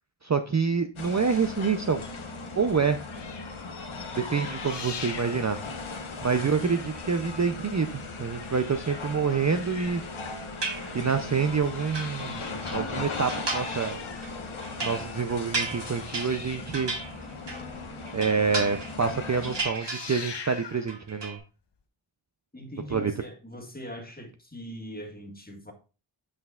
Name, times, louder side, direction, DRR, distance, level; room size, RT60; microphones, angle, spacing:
voice 1, 0.2-2.1 2.6-3.0 4.2-5.6 6.2-10.0 10.9-14.0 14.8-16.9 18.1-21.4 22.9-23.1, right 5 dB, 35° right, 7 dB, 0.5 m, -27 dB
sound 1, 1.0-19.6, left 3 dB, 75° left, 1.1 m, -38 dB
sound 2, 2.0-6.2 6.5-10.7 11.2-18.2 18.6-18.7 19.0-19.3 19.6-21.0 21.7-21.8, left 5 dB, 60° left, 0.9 m, -45 dB
sound 3, 10.6-11.3 11.7-12.8 13.3-13.9 14.2-17.7 18.1-19.1 19.4-20.5 20.8-21.4, right 3 dB, 55° right, 1.5 m, -34 dB
voice 2, 22.5-25.7, equal, 20° left, 3 dB, 1.6 m, -41 dB
8.2 x 5.5 x 2.4 m, 0.34 s
wide cardioid pair, 50°, 49 cm